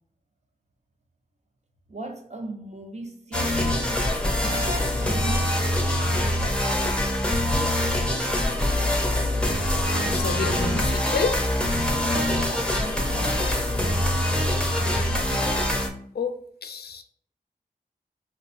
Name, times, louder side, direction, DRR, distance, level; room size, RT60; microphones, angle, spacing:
voice 1, 1.9-4.1 4.4-5.7 12.1-13.5, right 2 dB, 45° right, 0.6 m, -38 dB
sound 1, 3.3-15.9, left 1 dB, 5° left, 0.5 m, -24 dB
voice 2, 10.0-11.4 16.1-17.0, left 5 dB, 75° left, 0.4 m, -29 dB
4.5 x 2.2 x 2.4 m
wide cardioid pair, 85°, 17 cm